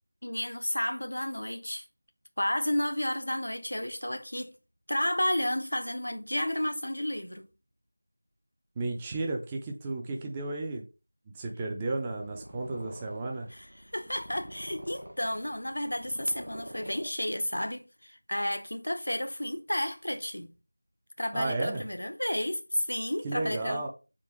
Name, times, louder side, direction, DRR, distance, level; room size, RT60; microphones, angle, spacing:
voice 1, 0.2-1.9 2.4-4.5 4.9-7.5 13.5-20.5 21.2-23.9, left 1 dB, 80° left, 0.5 m, -32 dB
voice 2, 8.8-10.8 11.3-13.5 21.3-21.8 23.2-23.9, right 2 dB, 10° right, 0.3 m, -33 dB
Purr, 12.0-17.6, equal, 85° right, 1.0 m, -46 dB
3.6 x 2.5 x 2.9 m
figure-of-eight pair, 175°, 0 cm